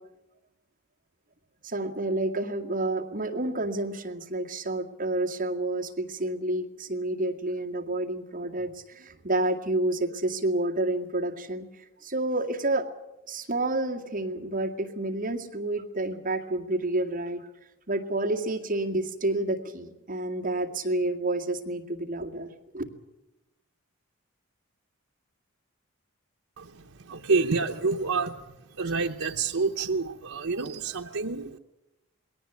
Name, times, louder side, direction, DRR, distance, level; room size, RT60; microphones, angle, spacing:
voice 1, 1.6-12.9 13.3-17.4 17.9-22.5 22.7-22.8, right 2 dB, 40° right, 2 dB, 2.0 m, -29 dB
voice 2, 27.1-28.3 28.8-31.6, right 4 dB, 75° right, 2 dB, 0.9 m, -28 dB
21.0 x 18.0 x 9.1 m, 0.96 s
head